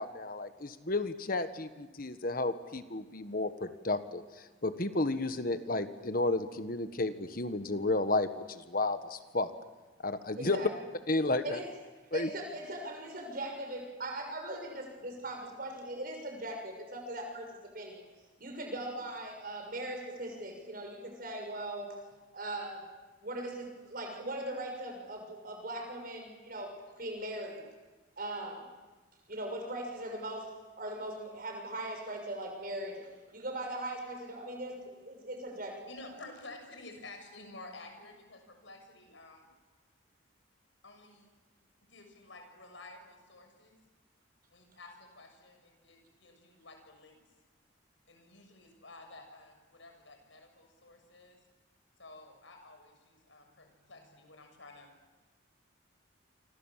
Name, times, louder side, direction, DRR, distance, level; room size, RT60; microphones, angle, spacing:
voice 1, 0.0-9.5 10.0-10.6 11.1-11.6 12.1-12.3, left 2 dB, 45° left, 10 dB, 1.4 m, -32 dB
voice 2, 10.4-10.7 11.4-11.7 12.1-18.0 18.4-22.0 22.3-22.8 23.2-27.6 28.2-28.7 29.3-30.5 30.8-36.2, right 1 dB, 45° right, 3 dB, 6.3 m, -40 dB
voice 3, 35.9-39.5 40.8-41.3 41.9-43.8 44.5-47.2 48.1-51.4 52.0-54.9, left 2 dB, 75° left, 5 dB, 6.5 m, -52 dB
28.5 x 25.5 x 7.5 m, 1.2 s
head